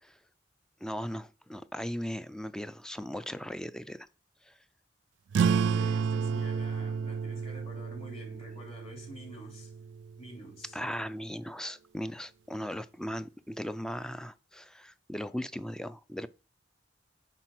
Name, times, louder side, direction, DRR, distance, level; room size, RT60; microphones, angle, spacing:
voice 1, 0.8-4.1 4.4-4.6 10.7-16.3, equal, 5° left, 0.4 m, -38 dB
sound 1, 5.3-10.4, right 6 dB, 75° right, 0.3 m, -31 dB
voice 2, 5.5-9.7 10.2-10.8, equal, 35° left, 3.0 m, -48 dB
9.2 x 3.9 x 5.9 m
head